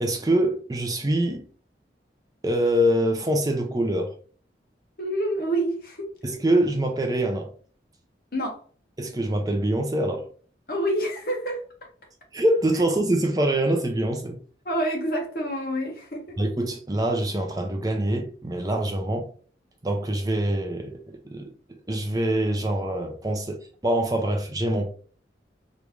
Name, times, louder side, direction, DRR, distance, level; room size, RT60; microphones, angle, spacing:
voice 1, 0.0-1.4 2.4-4.1 6.2-7.5 9.0-10.3 12.3-14.4 16.4-19.3 19.8-21.5 21.9-23.6 23.8-24.9, right 1 dB, 20° right, 0.5 m, -24 dB
voice 2, 5.0-6.0 8.3-8.6 10.7-11.6 14.6-16.3, right 1 dB, 55° left, 0.9 m, -27 dB
3.0 x 2.6 x 3.4 m
head